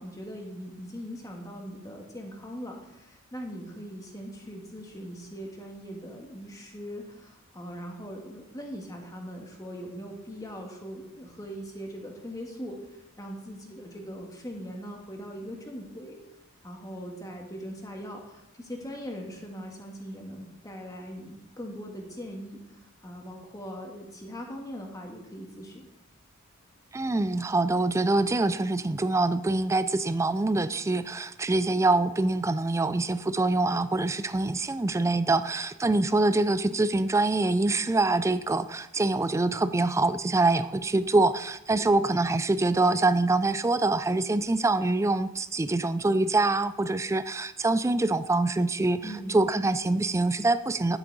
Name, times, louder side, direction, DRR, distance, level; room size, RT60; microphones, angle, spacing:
voice 1, 0.0-16.2 16.6-25.9 49.0-49.4, equal, 15° left, 1 dB, 1.6 m, -40 dB
voice 2, 26.9-51.0, right 2 dB, 15° right, 14 dB, 0.3 m, -25 dB
10.5 x 8.1 x 4.0 m, 0.92 s
head